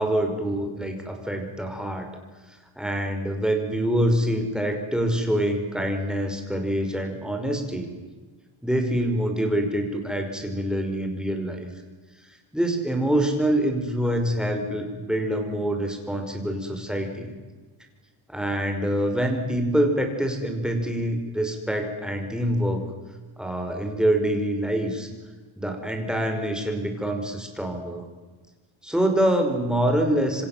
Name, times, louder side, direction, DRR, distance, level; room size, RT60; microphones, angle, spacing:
voice 1, 0.0-2.1 2.8-7.9 8.6-11.7 12.5-17.4 18.3-22.8 23.4-25.1 25.6-28.1 28.8-30.5, right 1 dB, ahead, 4 dB, 5.3 m, -25 dB
27.5 x 26.0 x 7.5 m, 1.3 s
wide cardioid pair, 140°, 50 cm